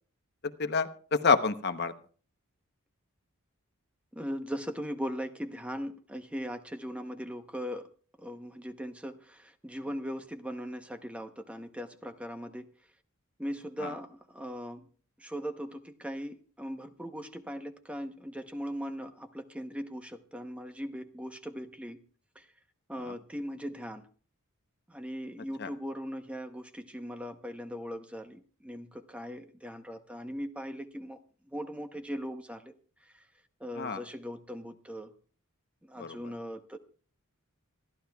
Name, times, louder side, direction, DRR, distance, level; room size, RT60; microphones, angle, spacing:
voice 1, 0.6-1.9 13.8-13.9 23.0-23.1 25.6-25.7 33.8-34.0 36.0-36.2, left 5 dB, 50° left, 9 dB, 0.9 m, -28 dB
voice 2, 4.1-7.9 8.2-12.7 13.4-14.9 15.2-22.0 22.3-22.5 22.9-24.1 24.9-31.2 31.5-32.7 33.0-33.3 33.6-35.1 35.8-36.8, equal, 5° right, 6 dB, 0.9 m, -39 dB
26.5 x 12.0 x 2.3 m, 0.41 s
head